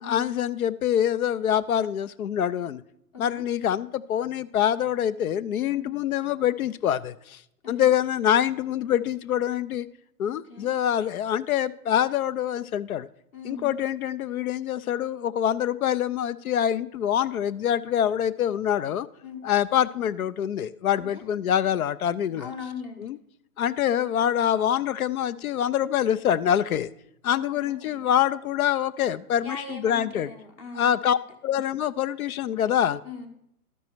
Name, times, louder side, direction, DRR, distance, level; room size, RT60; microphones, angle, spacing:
voice 1, 0.0-2.8 3.2-7.4 7.7-9.9 10.2-13.1 13.4-19.1 19.4-22.5 23.0-23.2 23.6-26.9 27.2-30.3 30.7-31.2 31.4-33.0, left 10 dB, 70° left, 16 dB, 0.6 m, -25 dB
voice 2, 10.3-10.7 13.3-13.8 19.2-19.4 21.1-21.2 22.4-23.1 27.3-28.0 29.4-31.1 33.0-33.3, left 4 dB, 20° left, 4 dB, 0.8 m, -40 dB
12.5 x 5.4 x 4.5 m, 0.76 s
hypercardioid pair, 145°, 46 cm